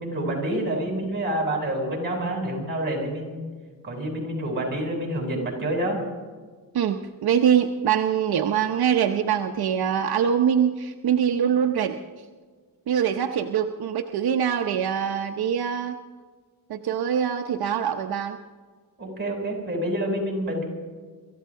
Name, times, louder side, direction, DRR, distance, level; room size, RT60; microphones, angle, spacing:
voice 1, 0.0-3.5 3.8-6.0 19.0-20.6, right 1 dB, 30° right, 0 dB, 6.7 m, -28 dB
voice 2, 6.7-12.0 12.9-16.0 16.7-18.4, right 8 dB, 80° right, 5 dB, 0.9 m, -23 dB
25.5 x 15.0 x 3.7 m, 1.5 s
wide cardioid pair, 120°, 37 cm